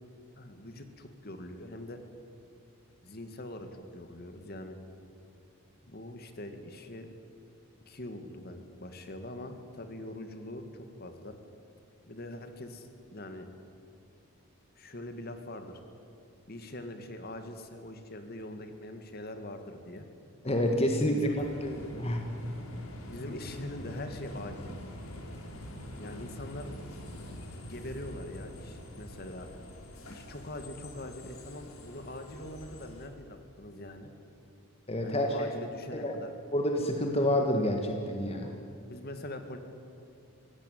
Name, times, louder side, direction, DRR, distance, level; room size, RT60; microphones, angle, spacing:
voice 1, 0.4-2.0 3.0-4.8 5.8-7.1 7.9-11.4 12.1-13.5 14.8-15.8 16.5-20.1 21.1-21.4 23.1-24.7 26.0-26.7 27.6-29.5 30.1-34.1 35.0-36.3 38.7-39.6, left 1 dB, 45° left, 7 dB, 2.1 m, -43 dB
voice 2, 20.4-21.3 21.6-22.2 34.9-35.6 35.9-36.1 36.5-38.5, equal, 30° left, 3 dB, 1.7 m, -28 dB
sound 1, 21.3-33.1, left 1 dB, 90° left, 3.7 m, -45 dB
24.5 x 17.5 x 9.3 m, 2.7 s
head